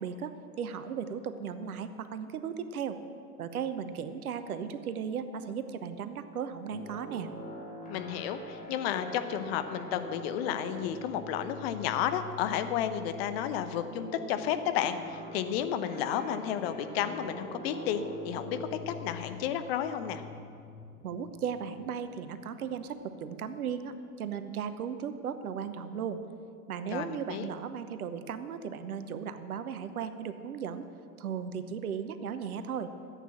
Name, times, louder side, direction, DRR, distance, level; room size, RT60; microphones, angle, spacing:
voice 1, 0.0-3.0 3.4-7.3 21.0-26.2 26.7-30.9 31.2-32.9, right 7 dB, 65° right, 11 dB, 0.9 m, -36 dB
sound 1, 6.7-23.2, equal, 15° left, 2.8 m, -45 dB
voice 2, 7.9-20.2 26.9-27.5, left 9 dB, 40° left, 10 dB, 0.8 m, -32 dB
13.5 x 8.3 x 7.4 m, 2.4 s
figure-of-eight pair, 90°, 47 cm